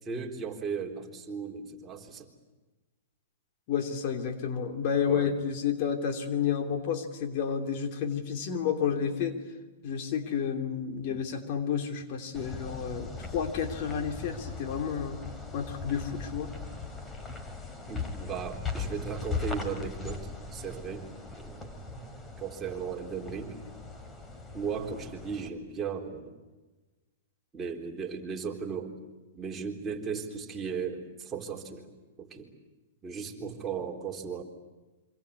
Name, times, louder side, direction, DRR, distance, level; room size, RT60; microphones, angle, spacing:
voice 1, 0.0-2.3 5.1-5.3 17.9-22.1 22.4-23.6 24.5-26.3 27.5-28.9 29.3-31.9 32.2-32.5 33.0-34.4, right 6 dB, 20° right, 1 dB, 3.8 m, -36 dB
voice 2, 3.7-9.4 9.8-15.2 15.5-16.5, left 7 dB, 50° left, 6 dB, 3.1 m, -30 dB
sound 1, 12.3-25.5, left 4 dB, 15° left, 2.8 m, -39 dB
27.0 x 25.0 x 8.5 m, 1.2 s
hypercardioid pair, 135°, 0 cm